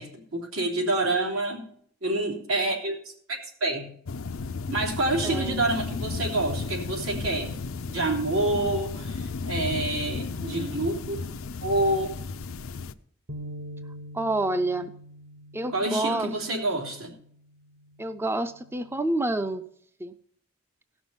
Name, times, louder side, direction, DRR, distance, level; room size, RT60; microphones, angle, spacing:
voice 1, 0.0-1.6 2.0-3.0 3.3-3.9 4.7-7.5 7.9-11.2 11.6-12.1 15.7-17.1, right 2 dB, 85° right, -1 dB, 3.3 m, -27 dB
sound 1, 4.1-12.9, left 4 dB, 90° left, 0.5 m, -34 dB
voice 2, 5.2-5.6 14.1-14.9 15.5-16.3 18.0-19.6 20.0-20.1, right 2 dB, 10° right, 11 dB, 0.4 m, -28 dB
sound 2, 13.3-19.5, equal, 55° right, 0.8 m, -45 dB
16.5 x 6.1 x 5.6 m, 0.65 s
head